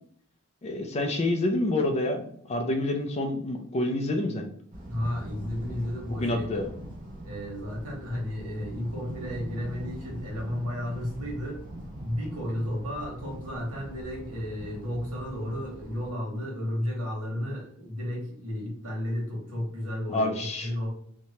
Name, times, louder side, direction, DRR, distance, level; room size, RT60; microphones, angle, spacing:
voice 1, 0.6-4.5 5.7-5.8 6.1-6.7 20.1-20.7, left 1 dB, 30° left, 5 dB, 0.3 m, -28 dB
sound 1, 4.7-16.1, right 1 dB, 35° right, 0.7 m, -41 dB
voice 2, 4.9-6.6 7.2-11.6 12.0-20.3 20.6-20.9, left 1 dB, 85° right, -2 dB, 1.2 m, -33 dB
2.7 x 2.2 x 2.9 m, 0.63 s
head